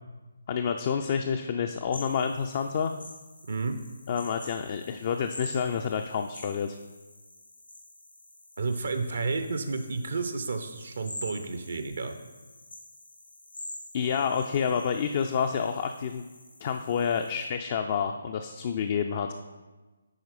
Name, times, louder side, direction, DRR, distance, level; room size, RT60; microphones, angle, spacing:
voice 1, 0.5-2.9 4.1-6.8 13.9-16.2 16.6-19.3, left 7 dB, 35° left, 5 dB, 0.4 m, -28 dB
sound 1, 1.9-17.5, left 1 dB, 85° left, 1.8 m, -47 dB
voice 2, 8.6-12.1, right 4 dB, 60° right, 7 dB, 0.6 m, -31 dB
9.9 x 4.2 x 4.1 m, 1.2 s
figure-of-eight pair, 145°, 0 cm